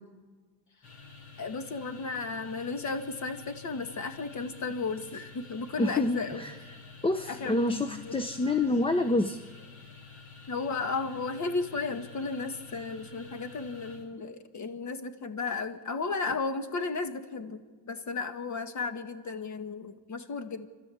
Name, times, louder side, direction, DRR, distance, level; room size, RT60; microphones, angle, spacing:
sound 1, 0.8-14.1, left 4 dB, 50° left, 5.1 m, -49 dB
voice 1, 1.4-6.8 7.3-8.2 10.5-20.7, left 4 dB, 35° left, 9 dB, 1.8 m, -34 dB
voice 2, 5.8-6.5 7.0-9.4, left 2 dB, 10° left, 8 dB, 0.7 m, -27 dB
28.5 x 13.0 x 8.5 m, 1.4 s
cardioid pair, 115°, 50 cm